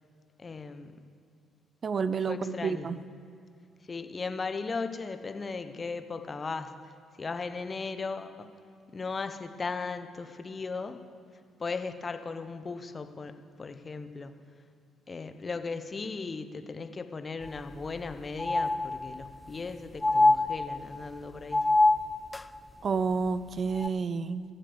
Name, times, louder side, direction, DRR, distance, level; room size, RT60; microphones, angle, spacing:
voice 1, 0.4-1.0 2.3-3.0 3.8-6.9 7.2-8.5 8.9-11.0 11.6-14.3 15.1-21.7, left 4 dB, 35° left, 9 dB, 1.0 m, -37 dB
voice 2, 1.8-3.0 22.8-24.4, right 5 dB, 50° right, 15 dB, 0.6 m, -29 dB
sound 1, 17.4-17.5 17.9-18.0 18.4-19.4 20.0-21.1 21.5-22.5 23.7-23.9, left 2 dB, 15° left, 0.5 m, -25 dB
16.5 x 7.5 x 7.1 m, 2.6 s
hypercardioid pair, 50°, 0 cm